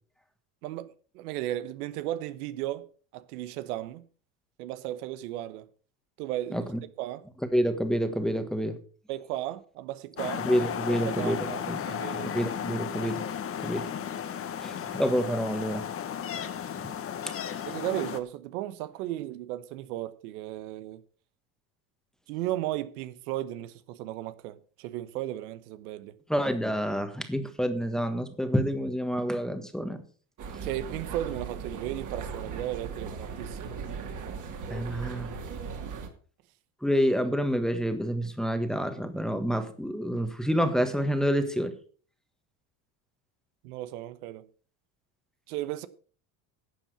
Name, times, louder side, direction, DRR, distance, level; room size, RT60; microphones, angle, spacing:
voice 1, 0.6-2.9 3.1-4.1 4.6-5.7 6.2-6.7 7.0-7.2 9.1-10.5 10.9-12.5 17.7-21.0 22.3-26.2 30.6-33.8 43.6-44.4 45.5-45.9, right 14 dB, 90° right, 1.1 m, -35 dB
voice 2, 7.5-8.8 10.4-11.8 12.1-13.2 13.6-13.9 14.6-15.8 16.8-16.9 17.3-17.4 26.3-30.0 34.7-35.3 36.8-41.7, equal, ahead, 1.4 m, -28 dB
sound 1, 10.2-18.2, left 8 dB, 30° left, 1.1 m, -34 dB
sound 2, 30.4-36.1, right 5 dB, 45° right, 2.7 m, -38 dB
11.5 x 7.3 x 6.0 m
supercardioid pair, 120°, 44 cm